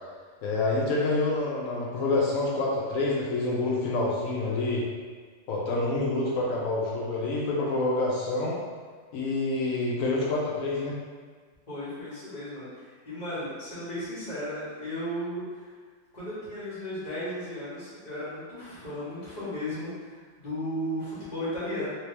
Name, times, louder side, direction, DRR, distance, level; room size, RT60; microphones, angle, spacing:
voice 1, 0.4-4.8 5.5-8.6 9.1-11.0, left 2 dB, 85° left, -5 dB, 1.0 m, -27 dB
voice 2, 11.7-15.4 16.1-21.8, equal, 35° left, -11 dB, 1.5 m, -35 dB
3.2 x 2.9 x 3.2 m, 1.5 s
omnidirectional pair, 1.4 m